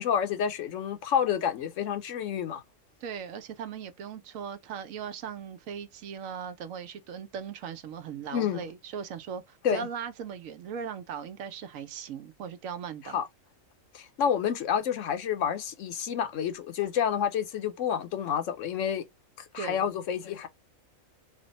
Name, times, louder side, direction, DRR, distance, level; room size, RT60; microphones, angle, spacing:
voice 1, 0.0-2.6 8.3-8.7 9.6-9.9 13.0-13.3 13.9-19.0 19.5-20.5, left 8 dB, 75° left, 1.0 m, -29 dB
voice 2, 3.0-13.2 19.5-19.9, right 7 dB, 80° right, 1.1 m, -38 dB
3.3 x 2.1 x 3.9 m
omnidirectional pair, 1.4 m